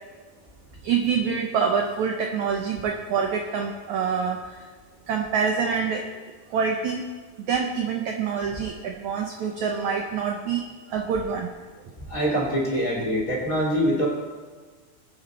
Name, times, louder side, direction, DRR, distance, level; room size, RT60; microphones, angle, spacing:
voice 1, 0.8-4.6 5.1-6.1 6.5-7.0 7.5-11.5, right 6 dB, 80° right, 2 dB, 1.7 m, -26 dB
voice 2, 12.1-14.1, equal, 25° left, -4 dB, 2.8 m, -24 dB
21.0 x 8.7 x 4.2 m, 1.4 s
omnidirectional pair, 4.6 m